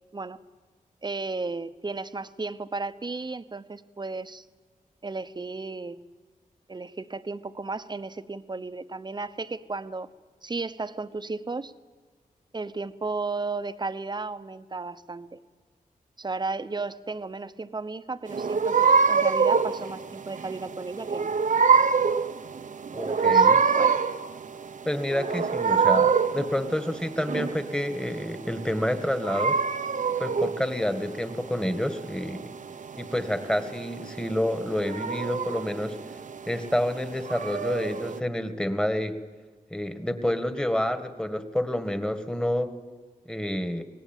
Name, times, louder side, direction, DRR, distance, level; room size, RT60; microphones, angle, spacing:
voice 1, 1.0-4.5 5.0-6.0 6.7-10.1 10.4-11.7 12.5-15.4 16.2-21.3 22.9-24.0, right 3 dB, 30° right, 12 dB, 1.0 m, -34 dB
sound 1, 18.3-38.2, right 5 dB, 60° right, 0.8 m, -25 dB
voice 2, 22.9-23.6 24.9-29.6 30.2-32.4 33.0-36.0 36.5-39.1 39.7-42.7 43.3-43.8, left 1 dB, 5° left, 9 dB, 1.7 m, -28 dB
24.5 x 18.5 x 9.0 m, 1.5 s
wide cardioid pair, 85°, 14 cm